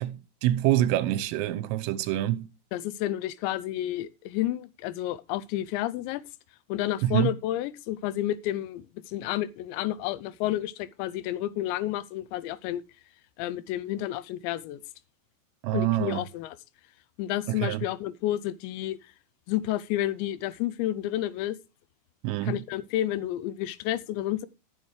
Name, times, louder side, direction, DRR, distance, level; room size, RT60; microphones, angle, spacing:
voice 1, 0.0-2.5 7.0-7.3 15.6-16.2 17.5-17.8 22.2-22.6, right 14 dB, 85° right, 3.4 m, -26 dB
voice 2, 2.7-6.2 6.7-12.8 13.4-14.8 15.7-16.6 17.2-19.1 19.5-21.6 22.5-24.5, left 13 dB, 80° left, 2.7 m, -30 dB
14.5 x 7.3 x 4.7 m
omnidirectional pair, 5.7 m